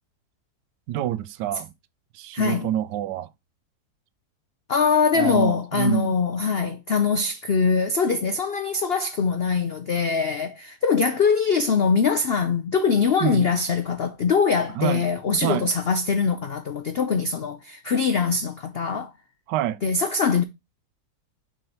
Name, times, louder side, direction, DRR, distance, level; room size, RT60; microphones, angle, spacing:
voice 1, 0.9-1.7 2.1-3.3 5.1-6.1 13.2-13.5 14.7-15.0 15.4-15.7 19.5-19.8, right 12 dB, 80° right, 1.2 m, -27 dB
voice 2, 2.3-2.7 4.7-19.1 19.8-20.4, left 5 dB, 90° left, 0.5 m, -23 dB
6.3 x 4.5 x 4.4 m
omnidirectional pair, 1.9 m